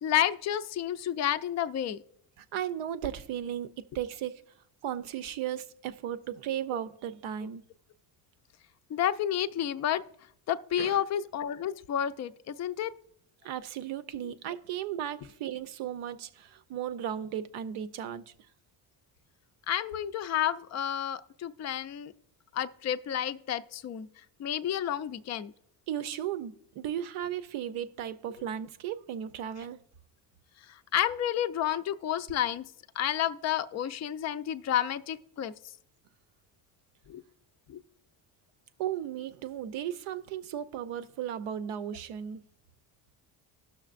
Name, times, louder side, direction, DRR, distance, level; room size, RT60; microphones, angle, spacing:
voice 1, 0.0-2.0 8.9-10.0 10.5-12.9 19.7-22.1 22.5-24.1 24.4-25.5 30.7-32.7 33.0-35.5 37.1-37.2 37.7-37.8, left 10 dB, 35° left, 0.4 m, -30 dB
voice 2, 2.4-4.4 4.8-7.6 10.8-11.0 13.4-18.3 25.9-29.8 38.8-42.4, right 10 dB, 75° right, 0.7 m, -35 dB
16.0 x 6.3 x 2.5 m
supercardioid pair, 80°, 49 cm